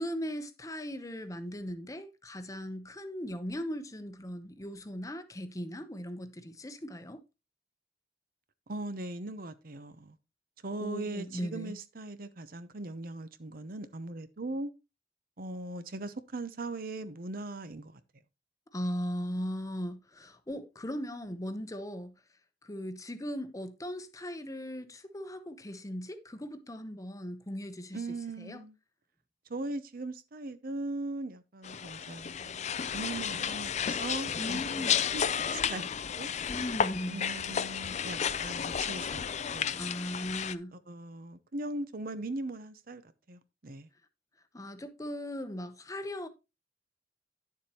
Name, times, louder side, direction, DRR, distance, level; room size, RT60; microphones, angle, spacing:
voice 1, 0.0-7.2 10.8-11.8 18.7-22.1 22.6-28.0 28.4-28.6 34.4-35.0 36.5-37.3 39.8-40.8 44.5-46.3, equal, 20° left, 0.9 m, -38 dB
voice 2, 8.7-10.2 10.6-14.7 15.4-18.0 27.9-28.8 29.5-34.9 35.1-35.9 36.2-36.5 37.1-39.2 39.5-39.8 40.7-43.0 43.3-43.9, right 2 dB, 55° right, 0.8 m, -39 dB
sound 1, 31.6-40.5, left 7 dB, 40° left, 0.5 m, -32 dB
10.5 x 7.2 x 2.9 m
head